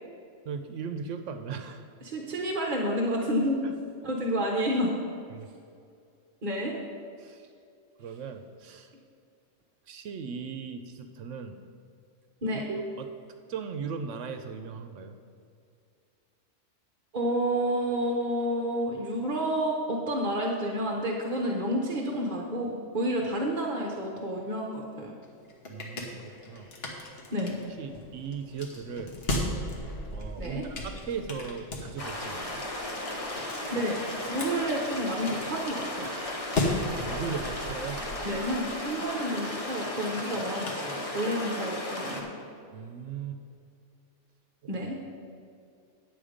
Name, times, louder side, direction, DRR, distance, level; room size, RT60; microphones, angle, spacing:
voice 1, 0.4-1.8 3.6-3.7 5.3-5.5 7.2-7.5 8.0-8.9 9.9-11.6 12.5-13.1 13.5-15.2 25.7-26.7 27.8-29.1 30.1-32.7 36.9-38.1 42.7-43.4 44.6-44.7, right 6 dB, 80° right, 7 dB, 0.9 m, -38 dB
voice 2, 2.0-3.6 4.0-5.0 6.4-6.7 12.4-12.6 17.1-25.1 27.3-27.6 30.4-30.6 33.7-34.0 34.3-36.1 38.2-42.2 44.7-45.0, equal, 40° right, 0 dB, 1.0 m, -30 dB
sound 1, 25.2-41.5, left 1 dB, 55° left, 1.5 m, -37 dB
sound 2, 32.0-42.2, left 1 dB, 30° left, 1.2 m, -35 dB
10.0 x 7.7 x 5.1 m, 2.4 s
omnidirectional pair, 1.3 m